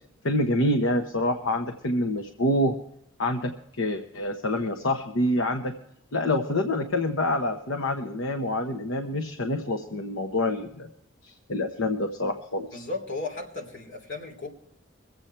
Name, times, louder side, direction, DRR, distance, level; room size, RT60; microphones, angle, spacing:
voice 1, 0.2-2.7 3.2-5.7 6.1-10.9 11.2-12.8, left 1 dB, 85° left, 5 dB, 0.9 m, -27 dB
voice 2, 12.7-14.5, left 3 dB, 65° left, 1 dB, 3.1 m, -35 dB
23.0 x 8.0 x 4.4 m, 0.80 s
head